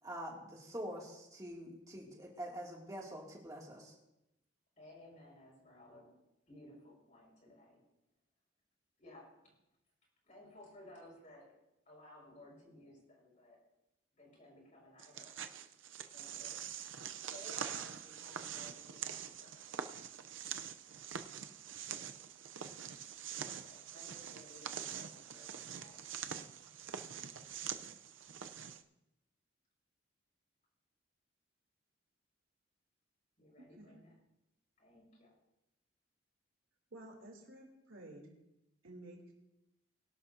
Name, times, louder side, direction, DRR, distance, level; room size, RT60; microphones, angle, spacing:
voice 1, 0.0-3.9, equal, 15° right, -2 dB, 2.4 m, -45 dB
voice 2, 4.8-6.1 6.5-7.8 9.0-9.5 10.2-11.5 11.9-13.6 14.1-15.3 16.1-16.6 17.3-19.6 23.4-26.0 33.4-34.1 34.8-35.3, left 1 dB, 40° left, -3 dB, 5.5 m, -57 dB
sound 1, 15.0-28.8, right 8 dB, 75° right, 0.6 m, -45 dB
voice 3, 33.6-34.0 36.9-38.3 38.8-39.3, right 1 dB, 90° right, 1 dB, 3.1 m, -53 dB
22.0 x 11.5 x 2.7 m, 0.89 s
head